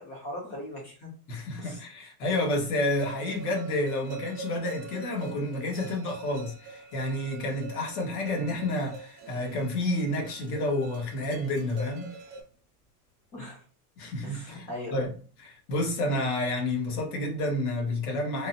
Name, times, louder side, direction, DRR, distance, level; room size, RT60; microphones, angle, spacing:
voice 1, 0.0-1.1 1.6-1.8 8.4-8.5 13.3-13.6 14.2-15.1, left 1 dB, 15° left, 0.4 m, -39 dB
voice 2, 1.3-12.1 14.0-15.1 15.7-18.5, left 1 dB, 75° left, 1.3 m, -30 dB
sound 1, 3.0-12.4, right 3 dB, 30° right, 0.6 m, -43 dB
3.7 x 2.1 x 2.6 m
supercardioid pair, 170°, 45 cm